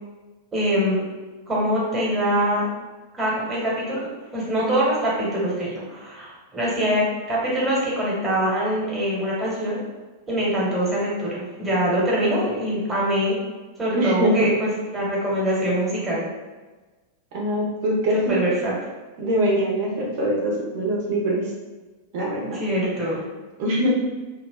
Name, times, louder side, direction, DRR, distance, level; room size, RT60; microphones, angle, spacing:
voice 1, 0.5-1.0 1.5-2.7 3.2-9.8 10.3-13.4 13.8-16.3 18.1-18.7 22.4-23.3, equal, 15° right, -6 dB, 1.4 m, -24 dB
voice 2, 13.9-14.5 17.3-18.4 19.2-21.5 22.1-22.6 23.6-23.9, right 1 dB, 50° right, -3 dB, 1.0 m, -23 dB
2.8 x 2.4 x 3.8 m, 1.3 s
figure-of-eight pair, 90°, 0 cm